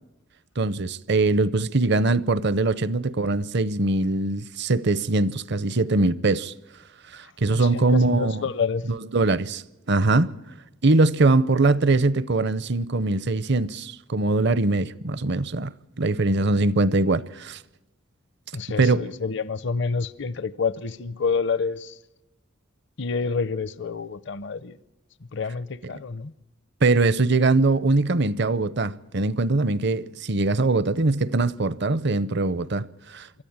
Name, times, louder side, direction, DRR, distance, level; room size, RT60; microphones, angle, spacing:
voice 1, 0.6-6.5 7.1-8.4 8.9-10.3 10.8-15.7 16.0-17.6 18.8-19.1 26.8-33.4, right 2 dB, 55° right, 0.7 m, -22 dB
voice 2, 7.5-8.8 18.5-22.0 23.0-24.8 25.3-26.3, left 5 dB, 60° left, 0.7 m, -28 dB
25.0 x 14.0 x 8.7 m
head